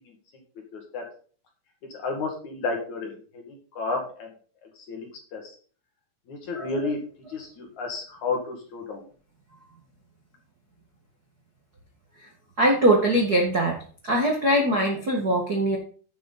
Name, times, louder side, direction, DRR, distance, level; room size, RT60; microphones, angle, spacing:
voice 1, 0.7-1.0 1.9-4.3 4.9-5.5 6.3-7.0 7.3-9.0, left 3 dB, 50° left, 2 dB, 3.0 m, -32 dB
voice 2, 12.6-13.8 14.0-15.8, right 1 dB, 40° right, 0 dB, 1.3 m, -22 dB
11.0 x 8.5 x 4.0 m, 0.42 s
omnidirectional pair, 4.7 m